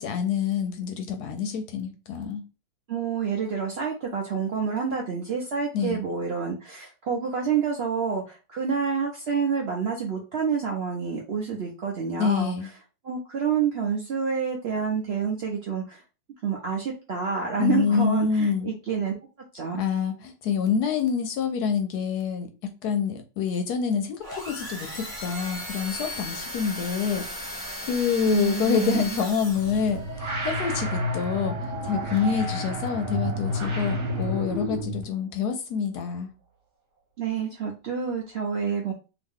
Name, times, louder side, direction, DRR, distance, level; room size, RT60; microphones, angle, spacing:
voice 1, 0.0-2.4 5.7-6.0 11.5-11.6 12.2-12.7 17.6-18.7 19.7-22.5 22.8-36.3, left 7 dB, 70° left, 6 dB, 1.0 m, -27 dB
voice 2, 2.9-12.5 13.0-16.0 16.4-19.2 19.5-19.8 28.3-29.2 37.2-38.9, right 6 dB, 85° right, -1 dB, 0.5 m, -28 dB
sound 1, 24.2-30.0, left 1 dB, ahead, 1.2 m, -36 dB
sound 2, 29.5-35.0, equal, 45° right, 1.2 m, -30 dB
2.9 x 2.6 x 3.5 m, 0.31 s
omnidirectional pair, 2.0 m